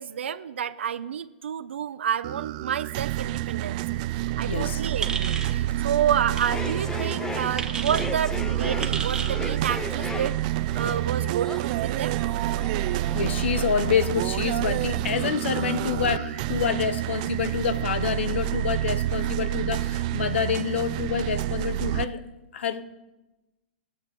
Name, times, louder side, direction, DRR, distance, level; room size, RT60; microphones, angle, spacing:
voice 1, 0.0-4.0 4.4-10.3 10.7-12.2, right 9 dB, 80° right, 0.7 m, -29 dB
sound 1, 2.2-22.0, right 15 dB, 40° right, 0.4 m, -28 dB
voice 2, 4.4-4.8 13.1-22.2 22.5-22.8, left 7 dB, 75° left, 1.2 m, -27 dB
sound 2, 5.0-5.6 6.3-6.5 7.6-8.1 8.8-9.4, right 5 dB, 10° right, 1.1 m, -32 dB
sound 3, 6.3-14.1, left 3 dB, 10° left, 0.6 m, -37 dB
21.5 x 8.0 x 3.8 m
hypercardioid pair, 145°, 6 cm